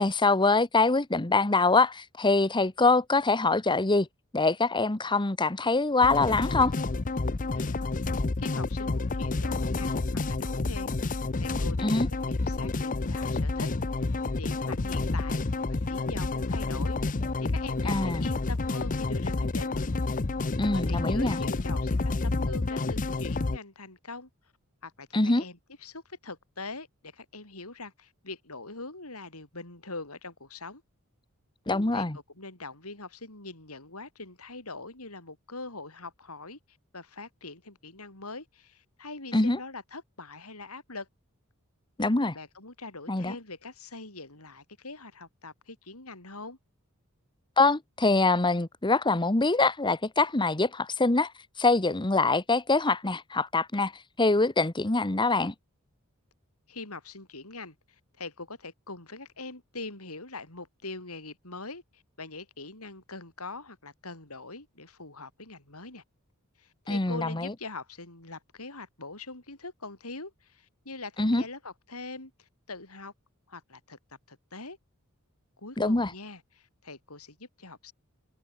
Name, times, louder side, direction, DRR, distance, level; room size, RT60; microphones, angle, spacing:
voice 1, 0.0-4.1 4.3-6.7 11.8-12.1 17.9-18.2 20.6-21.4 25.1-25.4 31.7-32.2 39.3-39.6 42.0-42.3 43.1-43.3 47.6-51.3 51.6-53.9 54.2-55.5 66.9-67.5 71.2-71.4 75.8-76.1, left 3 dB, 20° left, 1.1 m, -24 dB
sound 1, 6.0-23.6, left 3 dB, 35° left, 0.7 m, -29 dB
voice 2, 7.5-7.8 8.4-13.7 14.0-15.4 15.7-19.7 20.7-24.3 24.8-30.8 31.9-32.1 32.4-41.1 42.3-46.6 56.7-66.0 66.6-73.1 73.5-74.0 74.3-74.8 75.6-77.9, left 3 dB, 90° left, 7.9 m, -43 dB
head